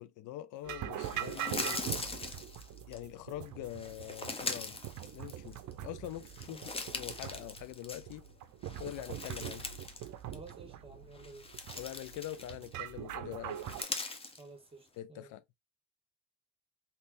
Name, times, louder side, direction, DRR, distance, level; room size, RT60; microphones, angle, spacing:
voice 1, 0.0-1.9 2.9-4.8 5.1-8.2 8.8-9.7 11.8-13.8 15.0-15.4, left 13 dB, 85° left, 0.4 m, -44 dB
sound 1, 0.6-13.8, right 11 dB, 75° right, 0.5 m, -43 dB
sound 2, 1.0-3.0 3.7-5.7 6.1-8.3 8.6-10.1 10.3-10.5 11.1-12.8 13.5-14.4, left 3 dB, 20° left, 0.7 m, -41 dB
voice 2, 10.3-11.5 14.4-15.3, right 3 dB, 20° right, 1.2 m, -52 dB
3.3 x 2.9 x 2.5 m
cardioid pair, 90°, 30 cm